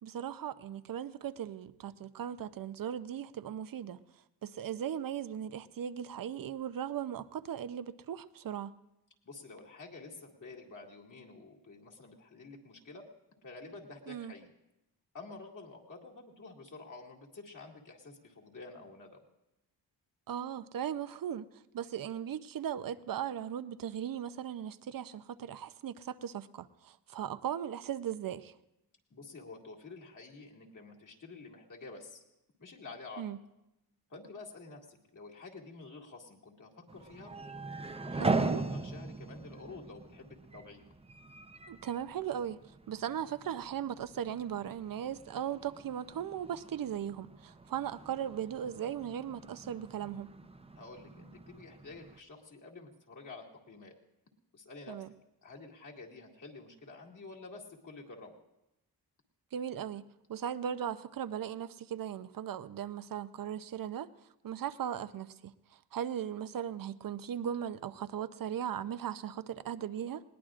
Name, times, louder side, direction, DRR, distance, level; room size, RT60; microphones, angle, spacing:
voice 1, 0.0-4.0 4.4-8.7 14.1-14.3 20.3-21.5 21.7-28.5 33.2-33.4 38.2-38.6 41.7-42.6 42.9-50.3 54.9-55.1 59.5-60.0 60.3-64.1 64.4-70.2, right 9 dB, 55° right, 14 dB, 0.6 m, -38 dB
voice 2, 9.2-13.1 13.4-14.5 15.1-19.2 29.1-32.2 32.6-33.3 34.1-37.3 38.0-40.9 50.7-53.9 54.5-55.1 55.4-58.4, left 3 dB, 50° left, -1 dB, 2.3 m, -49 dB
sound 1, 36.9-52.2, right 3 dB, 15° right, 0.7 m, -41 dB
20.5 x 18.5 x 2.5 m, 0.90 s
cardioid pair, 85°, 40 cm